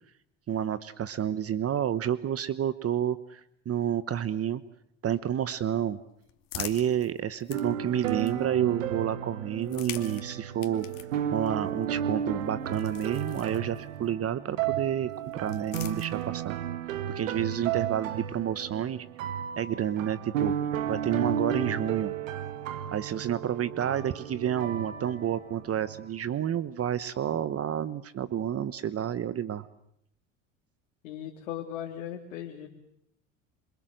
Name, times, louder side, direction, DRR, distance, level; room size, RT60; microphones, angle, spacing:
voice 1, 0.5-4.6 5.0-6.0 6.5-10.9 11.3-16.6 17.1-19.1 19.6-20.5 20.9-22.1 22.9-29.7, right 10 dB, 35° right, 15 dB, 1.1 m, -30 dB
sound 1, 5.7-8.7 9.5-14.1 15.1-16.6, left 13 dB, 55° left, 2.7 m, -45 dB
sound 2, 7.5-26.1, right 9 dB, 85° right, 2.2 m, -33 dB
voice 2, 31.0-32.7, left 10 dB, 85° left, 1 dB, 3.0 m, -38 dB
27.0 x 23.5 x 7.8 m, 0.74 s
hypercardioid pair, 80°, 38 cm